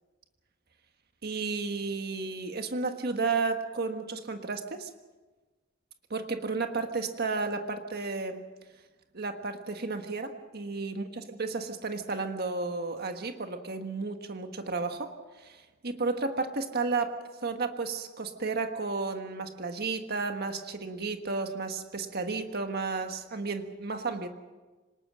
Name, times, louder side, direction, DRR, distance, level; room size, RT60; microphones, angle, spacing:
voice 1, 1.2-4.9 6.1-8.4 9.1-15.1 15.4-17.2 17.4-24.3, right 4 dB, 55° right, 6 dB, 1.5 m, -32 dB
26.0 x 19.5 x 6.3 m, 1.2 s
head